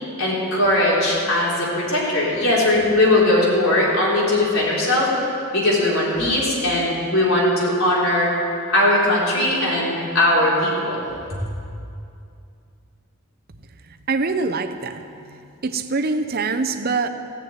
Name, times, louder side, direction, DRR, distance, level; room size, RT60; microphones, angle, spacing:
voice 1, 0.2-5.1 5.5-8.3 8.7-11.0 11.3-11.4, left 1 dB, 70° left, -5 dB, 3.9 m, -19 dB
voice 2, 14.1-15.4 15.6-17.1, right 4 dB, 45° right, 7 dB, 0.7 m, -24 dB
15.0 x 7.0 x 9.0 m, 2.5 s
head